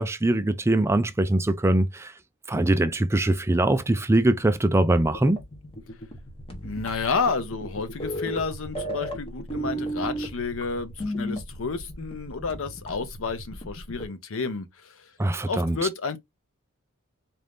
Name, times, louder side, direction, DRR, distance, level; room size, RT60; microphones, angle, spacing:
voice 1, 0.0-2.1 2.5-5.4 15.2-15.8, right 1 dB, 10° right, 0.4 m, -22 dB
sound 1, 5.1-14.1, equal, 25° left, 1.2 m, -34 dB
voice 2, 6.6-15.1 15.4-16.2, left 4 dB, 65° left, 0.7 m, -31 dB
4.3 x 2.6 x 3.4 m
head